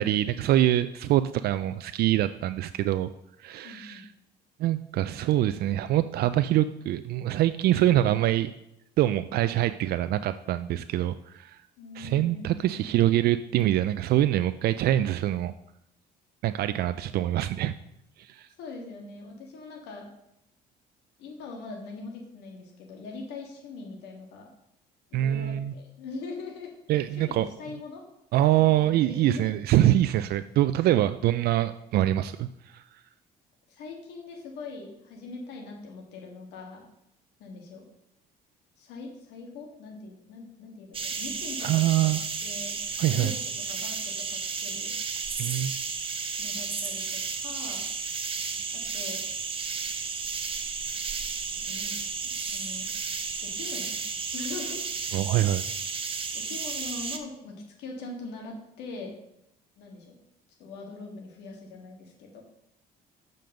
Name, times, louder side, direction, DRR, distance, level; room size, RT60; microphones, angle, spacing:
voice 1, 0.0-3.1 3.4-4.1 4.6-8.5 9.0-11.6 12.0-15.5 16.4-17.7 18.2-18.5 25.1-25.7 26.9-27.5 28.3-32.8 41.6-42.2 43.0-43.3 45.4-45.7 55.1-55.6, right 13 dB, 70° right, 12 dB, 0.4 m, -24 dB
voice 2, 3.6-4.1 11.8-13.2 18.6-20.1 21.2-24.5 25.1-26.7 27.1-28.0 28.4-29.5 33.7-36.8 37.4-37.8 38.8-42.1 42.4-42.7 43.0-43.3 43.7-44.9 46.4-47.8 48.7-49.2 51.7-52.9 53.4-54.0 54.3-54.8 56.3-57.5 57.8-59.1 59.8-60.1 60.6-62.4, left 3 dB, 90° left, 0 dB, 1.7 m, -42 dB
sound 1, 40.9-57.2, right 5 dB, 30° right, 1.0 m, -33 dB
7.7 x 5.3 x 6.4 m, 0.80 s
cardioid pair, 110°, 17 cm